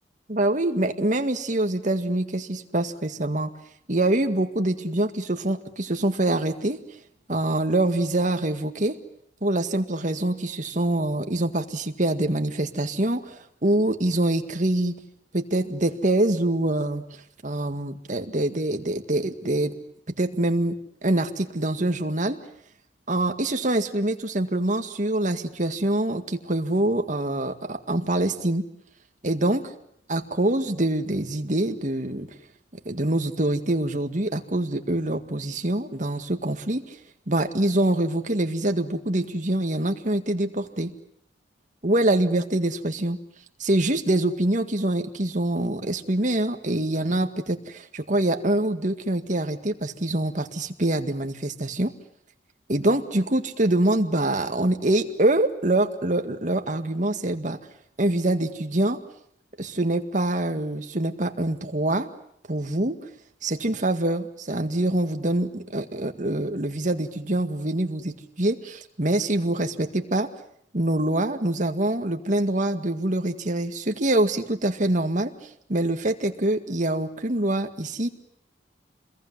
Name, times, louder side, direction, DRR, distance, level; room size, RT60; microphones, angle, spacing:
voice 1, 0.3-3.5 3.9-6.8 7.3-9.0 9.4-15.0 15.3-17.0 17.4-19.7 20.2-20.8 21.0-22.4 23.1-28.7 29.2-29.6 30.1-32.3 32.9-36.8 37.3-40.9 41.8-43.2 43.6-51.9 52.7-57.6 58.0-59.0 59.6-62.1 62.5-62.9 63.4-70.3 70.7-75.3 75.7-78.1, right 1 dB, 45° right, 6 dB, 2.0 m, -25 dB
28.0 x 21.5 x 9.7 m, 0.72 s
head